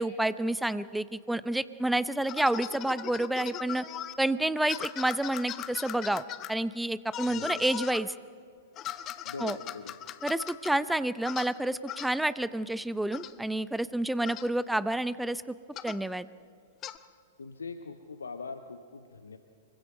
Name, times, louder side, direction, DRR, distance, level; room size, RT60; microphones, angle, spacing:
voice 1, 0.0-3.8 4.2-6.2 6.5-8.1 9.4-9.6 10.2-15.6 15.8-16.3, right 1 dB, 5° right, 16 dB, 0.6 m, -29 dB
sound 1, 2.2-4.1 4.7-6.5 7.1-8.0 8.8-10.7 11.2-11.5 11.9-12.1 13.1-13.3 14.2-14.5 15.8-16.0 16.8-17.0, left 12 dB, 30° left, 0.8 m, -39 dB
voice 2, 7.3-7.6 9.2-10.0 17.4-19.4, left 4 dB, 70° left, 9 dB, 1.0 m, -42 dB
25.0 x 23.5 x 5.4 m, 2.3 s
figure-of-eight pair, 100°, 0 cm